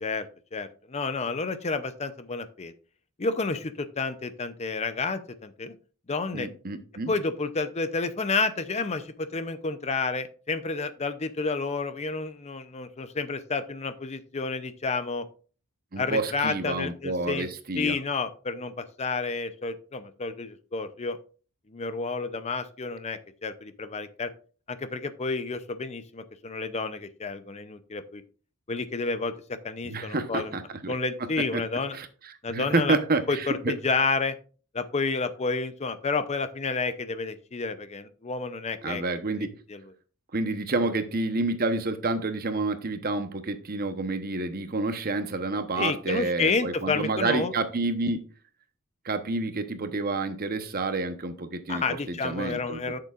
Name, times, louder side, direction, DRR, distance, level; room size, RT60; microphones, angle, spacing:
voice 1, 0.0-2.7 3.2-5.7 6.1-6.5 7.1-15.3 16.0-17.5 17.8-21.2 21.7-24.3 24.7-28.2 28.7-30.5 30.9-32.0 32.4-33.0 33.3-34.4 34.7-39.0 39.4-39.8 45.8-47.5 51.7-53.0, left 4 dB, 30° left, 11 dB, 0.5 m, -30 dB
voice 2, 6.3-7.1 15.9-18.0 29.8-30.9 31.5-31.6 31.9-32.1 32.5-33.7 38.8-39.5 40.3-48.2 49.0-52.8, right 3 dB, 40° right, 9 dB, 0.9 m, -29 dB
12.0 x 6.7 x 2.4 m, 0.39 s
head